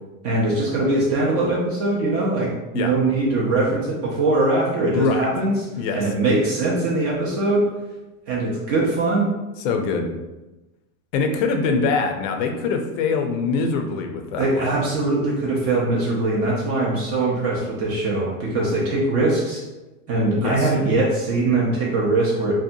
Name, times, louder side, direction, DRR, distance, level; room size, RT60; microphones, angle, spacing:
voice 1, 0.2-5.7 5.9-7.7 8.3-9.3 14.4-19.6 20.1-22.5, right 2 dB, 35° right, -5 dB, 0.4 m, -21 dB
voice 2, 4.9-5.3 5.7-6.1 9.6-10.1 11.1-14.7 20.4-20.7, left 4 dB, 65° left, 4 dB, 0.5 m, -23 dB
2.6 x 2.1 x 2.5 m, 1.1 s
supercardioid pair, 145°, 43 cm